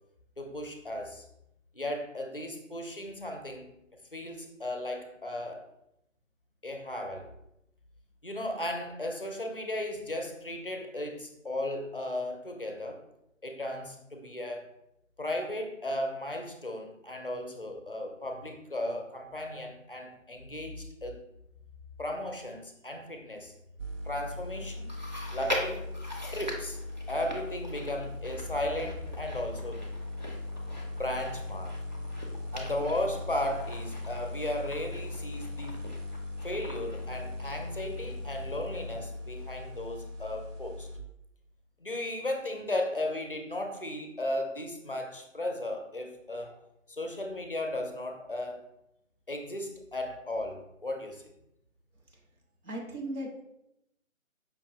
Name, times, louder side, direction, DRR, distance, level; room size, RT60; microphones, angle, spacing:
voice 1, 0.4-1.3 1.7-3.7 4.1-5.6 6.6-7.3 8.2-13.0 13.4-14.7 15.2-21.1 22.0-23.5 24.1-24.9 25.3-25.9 26.3-26.8 27.1-29.8 31.0-31.8 32.5-35.9 36.4-40.9 41.8-46.6 46.9-48.6 49.3-51.2, left 1 dB, 45° left, 3 dB, 0.5 m, -35 dB
sound 1, 23.8-41.0, left 2 dB, 65° right, 0.8 m, -39 dB
Chewing mastication, 24.9-38.4 38.7-38.8 39.7-39.8, equal, 35° right, 0.4 m, -42 dB
voice 2, 52.6-53.4, right 1 dB, 90° right, 1 dB, 1.5 m, -37 dB
5.2 x 2.7 x 2.7 m, 0.83 s
figure-of-eight pair, 170°, 41 cm